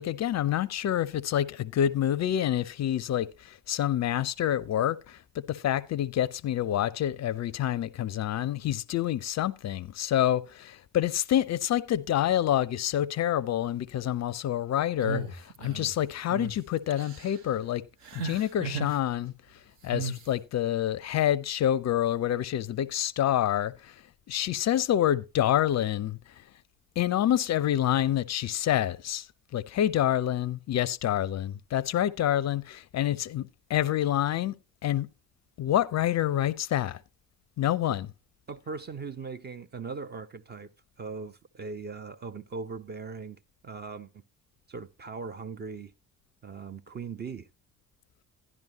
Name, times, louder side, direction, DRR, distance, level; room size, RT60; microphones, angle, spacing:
voice 1, 0.0-17.8 18.1-19.3 19.8-23.9 24.3-26.2 27.0-29.3 29.5-34.5 34.8-35.1 35.6-37.0 37.6-38.1, left 11 dB, 35° left, 0.5 m, -27 dB
sound 1, 15.0-15.9 16.3-16.5 16.9-17.4 18.0-19.0 19.9-20.3, right 4 dB, 65° right, 1.2 m, -35 dB
voice 2, 38.5-40.7 41.0-44.2 44.7-45.9 46.4-47.5, right 4 dB, 25° right, 0.4 m, -39 dB
12.0 x 10.5 x 2.8 m
figure-of-eight pair, 45°, 47 cm